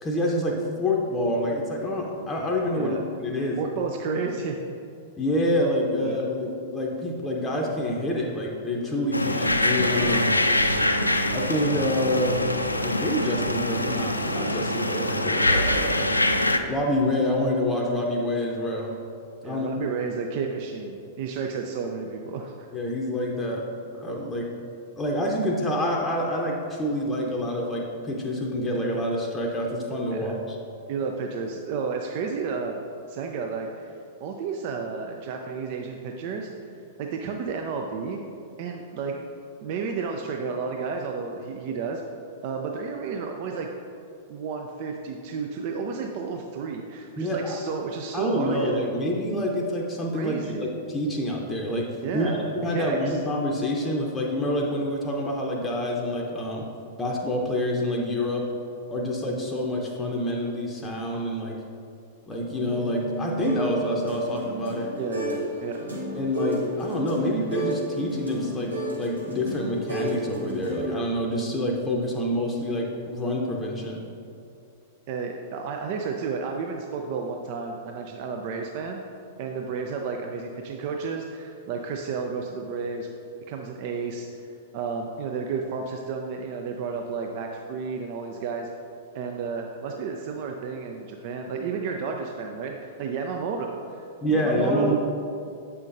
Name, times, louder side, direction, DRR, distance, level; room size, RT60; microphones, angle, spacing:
voice 1, 0.0-3.6 5.2-10.3 11.3-12.4 12.8-16.1 16.7-18.9 19.4-19.7 22.7-24.5 25.0-30.6 47.2-47.6 48.1-56.6 57.0-58.5 58.9-61.6 62.3-64.9 66.1-74.0 94.2-94.9, left 1 dB, 15° left, -1 dB, 0.7 m, -27 dB
voice 2, 3.6-4.6 6.0-6.2 19.4-22.7 30.1-30.3 30.9-32.8 33.1-36.5 37.0-38.2 38.6-39.2 39.6-42.0 42.4-43.7 44.3-48.8 50.1-50.7 52.0-53.2 65.0-65.8 75.1-79.0 79.4-83.1 83.5-84.5 84.7-88.7 89.1-94.9, right 5 dB, 45° right, 3 dB, 0.4 m, -32 dB
sound 1, 9.1-16.6, left 1 dB, 85° left, 0.3 m, -24 dB
sound 2, 62.6-65.5 65.7-70.9, right 2 dB, 90° right, 1.3 m, -32 dB
8.0 x 5.6 x 2.6 m, 2.5 s
figure-of-eight pair, 100°, 0 cm